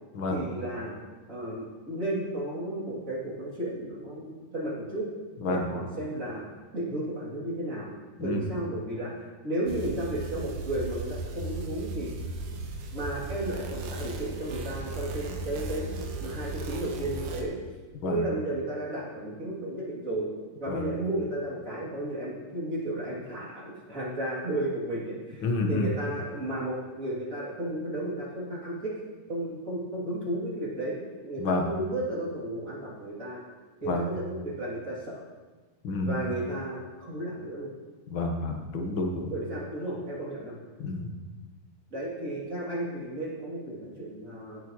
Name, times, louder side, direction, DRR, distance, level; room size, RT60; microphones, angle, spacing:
voice 1, 0.3-0.9 1.3-5.1 5.5-6.4 6.7-7.9 8.2-12.1 12.9-15.9 16.2-17.6 18.0-20.3 20.6-28.9 29.3-33.4 33.8-35.2 36.0-37.7 39.3-40.6 41.9-44.6, right 1 dB, 25° right, -6 dB, 2.9 m, -33 dB
sound 1, 9.7-17.4, right 2 dB, 75° right, 2.6 m, -36 dB
voice 2, 25.4-25.9 31.4-31.6 33.9-34.1 35.8-36.2 38.1-39.3 40.8-41.1, left 2 dB, 60° left, 2 dB, 1.3 m, -29 dB
16.5 x 9.6 x 3.1 m, 1.3 s
omnidirectional pair, 4.0 m